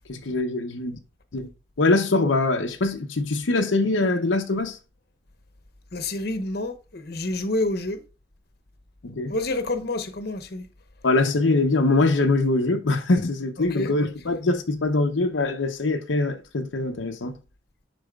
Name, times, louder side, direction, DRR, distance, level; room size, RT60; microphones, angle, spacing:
voice 1, 0.1-1.0 1.3-1.5 1.8-4.8 9.0-9.4 11.0-17.3, left 2 dB, 80° left, 0.8 m, -23 dB
voice 2, 5.9-8.0 9.3-10.6 13.6-13.9, left 2 dB, 55° left, 1.0 m, -28 dB
11.5 x 4.1 x 2.3 m
head